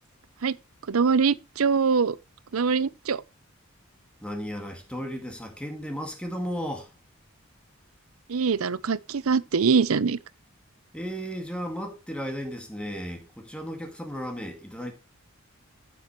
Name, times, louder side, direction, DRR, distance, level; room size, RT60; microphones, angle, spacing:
voice 1, 0.9-2.2 2.5-3.2 8.3-10.2, right 5 dB, 80° right, 0.6 m, -23 dB
voice 2, 4.2-6.9 10.9-14.9, equal, 5° left, 2.0 m, -34 dB
15.0 x 7.2 x 3.1 m
head